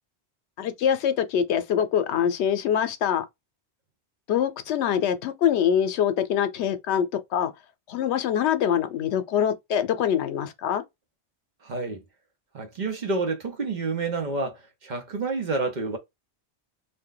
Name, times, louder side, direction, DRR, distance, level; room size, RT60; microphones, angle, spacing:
voice 1, 0.6-3.2 4.3-7.5 7.9-10.8, left 9 dB, 85° left, 0.9 m, -24 dB
voice 2, 11.6-12.0 12.5-16.0, right 3 dB, 50° right, 0.7 m, -29 dB
2.5 x 2.2 x 3.7 m
omnidirectional pair, 1.1 m